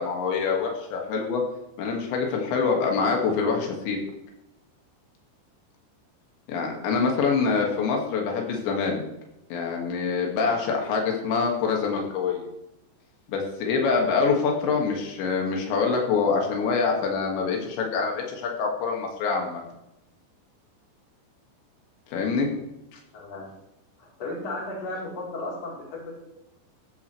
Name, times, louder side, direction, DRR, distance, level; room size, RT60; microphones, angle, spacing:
voice 1, 0.0-1.4 1.8-4.0 6.5-9.0 9.5-12.5 13.3-19.6 22.1-22.5, left 5 dB, 90° left, 0 dB, 4.4 m, -25 dB
voice 2, 23.1-23.5 24.0-26.2, left 2 dB, 35° left, -4 dB, 4.7 m, -35 dB
14.0 x 12.5 x 3.3 m, 0.88 s
omnidirectional pair, 5.0 m